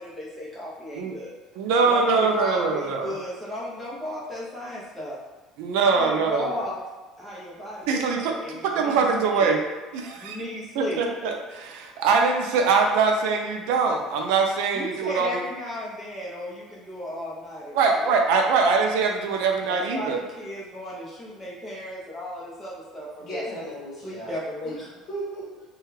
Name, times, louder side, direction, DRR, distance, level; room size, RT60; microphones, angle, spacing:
voice 1, 0.0-1.3 1.8-5.2 5.9-6.8 7.2-9.5 10.2-11.0 14.7-18.2 19.7-23.4 24.0-24.9, left 1 dB, 10° left, -7 dB, 0.8 m, -35 dB
voice 2, 1.6-3.2 5.6-6.5 7.9-9.6 9.9-10.4 10.8-15.4 17.7-20.2, right 4 dB, 80° right, 3 dB, 0.4 m, -23 dB
voice 3, 23.2-25.6, right 1 dB, 40° left, -7 dB, 1.4 m, -37 dB
3.2 x 2.3 x 3.2 m, 1.3 s
cardioid pair, 170°, 0 cm